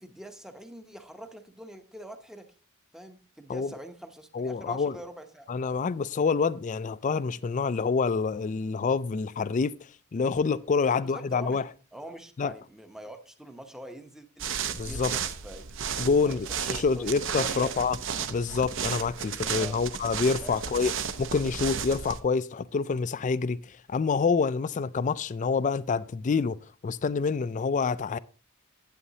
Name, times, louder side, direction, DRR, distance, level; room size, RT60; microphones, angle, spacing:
voice 1, 0.0-2.5 2.9-5.5 10.8-11.6 11.9-14.5 14.8-15.6 16.0-16.4 16.7-17.1 17.4-17.7 19.2-19.3 19.6-19.8 20.4-20.6, right 1 dB, ahead, 0.7 m, -44 dB
voice 2, 4.3-5.0 5.5-9.7 10.1-11.6 12.4-12.5 14.7-15.1 16.0-18.0 18.3-20.9 21.2-26.6 26.8-28.2, left 5 dB, 35° left, 0.3 m, -27 dB
sound 1, 14.4-22.2, right 7 dB, 60° right, 0.7 m, -33 dB
11.0 x 8.5 x 2.8 m
head